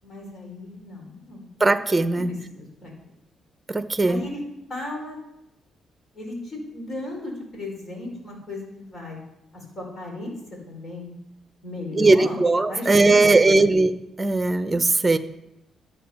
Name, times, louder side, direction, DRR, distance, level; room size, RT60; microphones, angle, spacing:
voice 1, 0.0-1.5 2.1-2.9 4.1-4.4 4.7-5.2 6.1-9.2 9.5-10.3 10.7-11.1 11.6-12.4 12.7-13.7, left 2 dB, 45° left, 0 dB, 5.0 m, -35 dB
voice 2, 1.6-2.3 3.7-4.2 11.9-13.9 14.2-15.2, right 3 dB, 20° right, 10 dB, 0.9 m, -19 dB
12.5 x 8.9 x 5.9 m, 0.89 s
cardioid pair, 90°, 0 cm